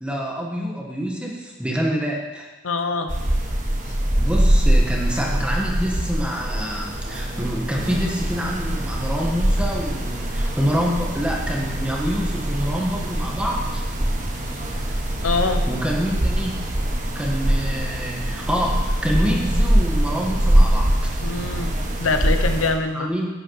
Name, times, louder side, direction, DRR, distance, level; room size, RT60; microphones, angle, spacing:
voice 1, 0.0-2.5 4.2-13.8 15.4-16.6 17.1-21.1 22.9-23.3, equal, 5° right, -2 dB, 1.6 m, -26 dB
voice 2, 2.6-3.1 15.2-15.6 21.2-21.7 22.0-23.1, left 3 dB, 90° left, 7 dB, 1.0 m, -23 dB
sound 1, 3.1-22.7, right 1 dB, 40° right, 1.5 m, -23 dB
11.5 x 9.3 x 4.9 m, 1.2 s
head